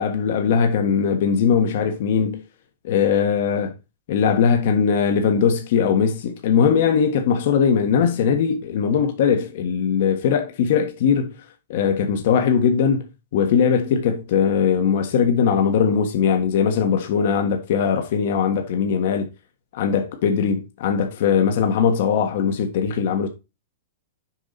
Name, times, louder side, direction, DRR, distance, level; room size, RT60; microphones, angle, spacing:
voice 1, 0.0-2.4 2.8-3.7 4.1-11.3 11.7-13.1 13.3-19.3 19.7-23.3, left 7 dB, 60° left, 1.5 m, -20 dB
7.2 x 4.8 x 4.2 m
hypercardioid pair, 140°, 0 cm